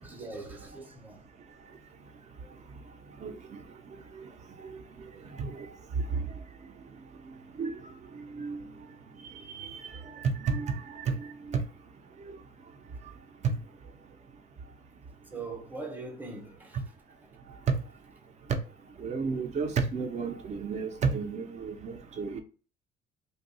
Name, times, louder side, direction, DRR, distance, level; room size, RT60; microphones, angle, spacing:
voice 1, 0.0-1.2 2.4-2.5 9.9-10.2 15.3-16.8, right 3 dB, 10° right, 0.8 m, -42 dB
voice 2, 10.1-11.6 19.0-22.4, right 5 dB, 45° right, 0.6 m, -32 dB
2.6 x 2.3 x 4.0 m
cardioid pair, 110°, 17 cm